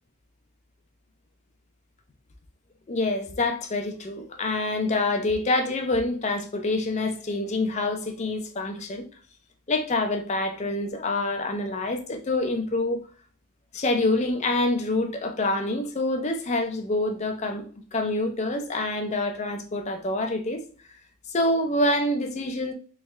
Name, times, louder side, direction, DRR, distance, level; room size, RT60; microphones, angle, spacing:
voice 1, 2.9-9.1 9.7-13.1 13.7-20.6 21.3-22.7, left 2 dB, 30° left, 0.5 m, -26 dB
3.5 x 3.1 x 3.1 m
head